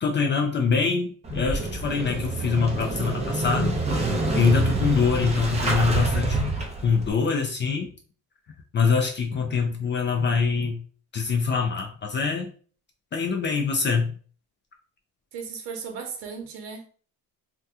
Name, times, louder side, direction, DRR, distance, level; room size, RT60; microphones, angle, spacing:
voice 1, 0.0-3.8 4.3-6.6 6.8-7.9 8.7-10.8 11.1-12.5 13.1-14.1, left 5 dB, 30° left, 0.4 m, -24 dB
Motorcycle / Engine starting, 1.2-7.1, right 3 dB, 15° right, 0.6 m, -27 dB
voice 2, 15.3-16.9, right 6 dB, 70° right, 0.9 m, -36 dB
2.8 x 2.2 x 3.5 m
cardioid pair, 140°, 41 cm